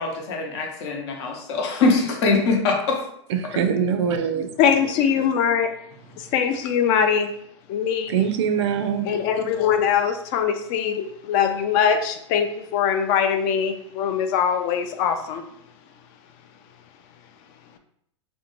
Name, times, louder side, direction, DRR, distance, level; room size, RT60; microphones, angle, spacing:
voice 1, 0.0-3.0, left 3 dB, 65° left, 2 dB, 0.7 m, -22 dB
voice 2, 3.3-4.5 8.1-9.1, right 7 dB, 65° right, 8 dB, 0.4 m, -23 dB
voice 3, 4.6-5.7 6.2-7.3 7.7-8.1 9.0-15.4, left 7 dB, 50° left, 7 dB, 0.4 m, -22 dB
2.6 x 2.2 x 2.9 m, 0.70 s
hypercardioid pair, 110°, 15 cm